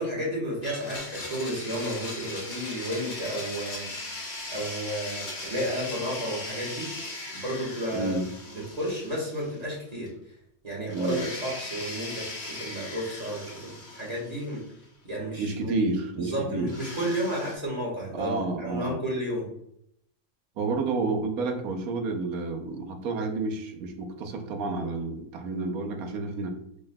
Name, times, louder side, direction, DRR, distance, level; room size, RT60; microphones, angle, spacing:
voice 1, 0.0-3.9 4.5-6.9 7.4-8.1 8.5-10.1 10.6-14.6 15.0-15.7 16.1-19.4, equal, 25° right, -4 dB, 1.5 m, -32 dB
Domestic sounds home sounds, 0.6-9.8 10.1-10.2 10.9-14.8 16.7-17.6, left 2 dB, 70° left, 1.7 m, -39 dB
voice 2, 7.9-8.2 10.9-11.2 15.4-16.7 18.1-19.0 20.6-26.6, right 3 dB, 75° right, 4 dB, 1.2 m, -30 dB
5.5 x 3.8 x 2.2 m, 0.73 s
omnidirectional pair, 1.5 m